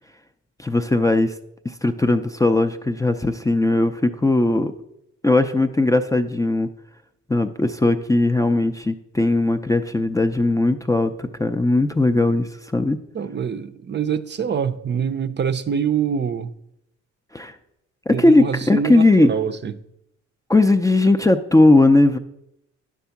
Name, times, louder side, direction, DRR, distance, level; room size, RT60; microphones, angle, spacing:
voice 1, 0.6-1.3 1.6-4.7 5.2-6.7 7.3-13.0 17.3-17.5 18.1-19.3 20.5-22.2, left 2 dB, 10° left, 0.4 m, -18 dB
voice 2, 13.1-16.5 18.1-19.7, right 7 dB, 35° right, 0.6 m, -25 dB
10.0 x 3.6 x 7.0 m
cardioid pair, 90°, 30 cm